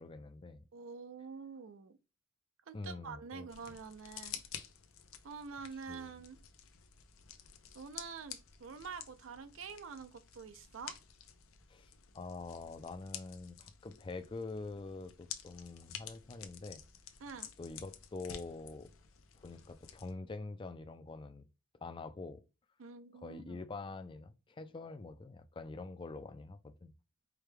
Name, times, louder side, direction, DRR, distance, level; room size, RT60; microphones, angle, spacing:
voice 1, 0.0-0.7 2.7-3.8 5.9-6.2 11.7-16.8 17.6-18.9 19.4-21.5 21.8-22.4 23.1-26.9, left 3 dB, 25° left, 0.3 m, -45 dB
voice 2, 0.7-2.0 2.7-4.4 5.2-6.4 7.7-11.0 17.2-17.5 22.8-23.6, right 5 dB, 70° right, 0.5 m, -47 dB
sound 1, 3.5-20.1, left 9 dB, 85° left, 0.6 m, -51 dB
4.7 x 2.2 x 3.2 m
head